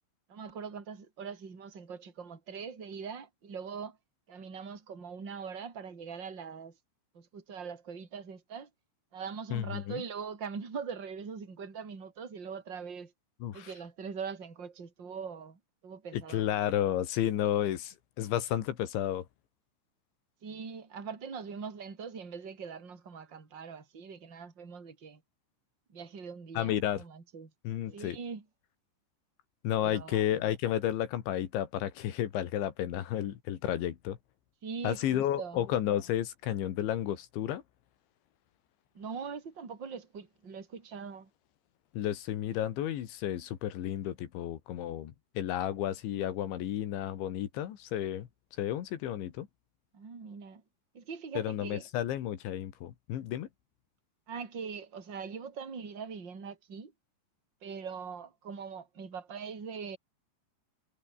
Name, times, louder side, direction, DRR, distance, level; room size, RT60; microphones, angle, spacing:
voice 1, 0.3-4.0 4.3-6.8 7.1-8.7 9.1-13.1 13.5-16.5 20.4-25.2 25.9-27.5 27.9-28.4 29.8-30.4 34.6-35.7 38.9-41.3 49.9-50.6 50.9-51.8 54.3-56.9 57.6-60.0, right 6 dB, 25° right, 4.1 m, -42 dB
voice 2, 9.5-10.0 13.4-13.7 16.1-19.3 26.6-27.0 27.6-28.2 29.6-34.2 34.8-37.6 41.9-48.3 48.6-49.5 51.4-53.5, left 11 dB, 75° left, 4.3 m, -32 dB
omnidirectional pair, 5.3 m